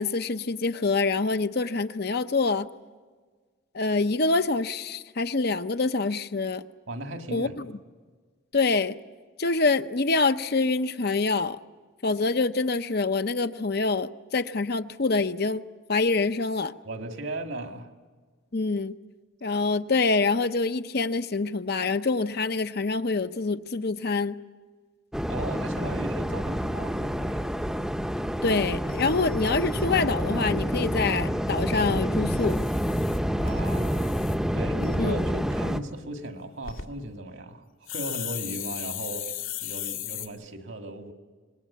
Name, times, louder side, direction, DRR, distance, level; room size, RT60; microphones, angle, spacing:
voice 1, 0.0-2.7 3.7-6.6 7.3-7.7 8.5-9.0 9.4-11.6 12.0-15.6 15.9-16.7 18.5-18.9 19.4-24.4 28.4-32.6 35.0-35.2, left 3 dB, 50° left, 10 dB, 0.7 m, -26 dB
voice 2, 6.9-7.6 16.8-17.9 25.3-27.4 33.4-34.2 34.5-37.6 37.9-41.1, right 2 dB, 70° right, 5 dB, 2.0 m, -37 dB
Waves surf, 25.1-35.8, equal, 5° right, 0.7 m, -28 dB
sound 1, 28.5-28.6 28.9-29.9 32.2-34.4 34.8-35.0 36.4-36.8 37.9-40.3, left 9 dB, 80° left, 2.1 m, -36 dB
26.0 x 21.0 x 8.4 m, 1.5 s
head